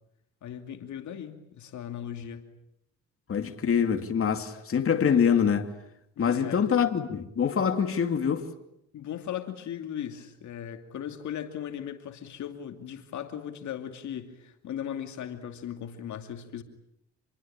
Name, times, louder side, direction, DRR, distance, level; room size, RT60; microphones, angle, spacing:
voice 1, 0.4-2.5 6.2-6.7 8.9-16.6, left 9 dB, 70° left, 2.6 m, -38 dB
voice 2, 3.3-5.7 6.2-8.5, left 7 dB, 45° left, 2.7 m, -25 dB
27.5 x 22.0 x 8.8 m
cardioid pair, 90°, 30 cm